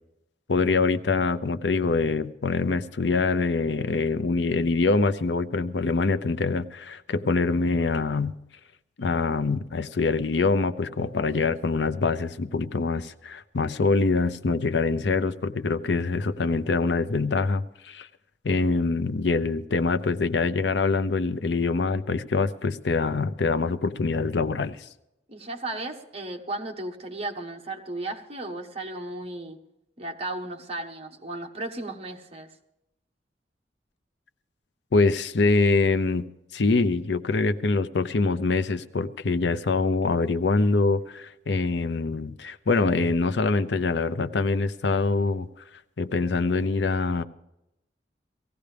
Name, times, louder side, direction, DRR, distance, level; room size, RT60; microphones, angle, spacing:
voice 1, 0.5-8.4 9.0-18.1 18.4-24.9 34.9-36.3 36.5-45.5 46.0-47.2, left 3 dB, 80° left, 0.6 m, -24 dB
voice 2, 25.3-29.6 30.0-32.5, right 2 dB, 35° right, 1.3 m, -35 dB
18.5 x 15.5 x 3.4 m
head